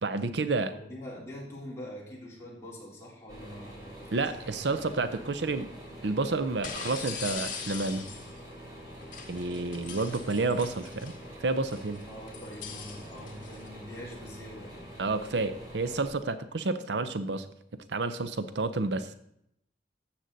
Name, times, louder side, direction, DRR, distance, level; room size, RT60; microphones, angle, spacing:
voice 1, 0.0-0.7 4.1-5.7 6.0-8.1 9.3-11.1 11.4-12.0 15.0-17.4 17.9-19.1, right 3 dB, 70° right, 12 dB, 0.6 m, -30 dB
voice 2, 0.6-4.8 12.1-14.9, equal, 15° left, -5 dB, 3.5 m, -44 dB
sound 1, 3.3-16.1, equal, 25° right, 3.1 m, -46 dB
sound 2, 4.5-4.7 6.6-8.4 9.0-11.2 11.6-13.7, left 6 dB, 50° left, 1.7 m, -41 dB
13.0 x 7.8 x 4.0 m, 0.76 s
head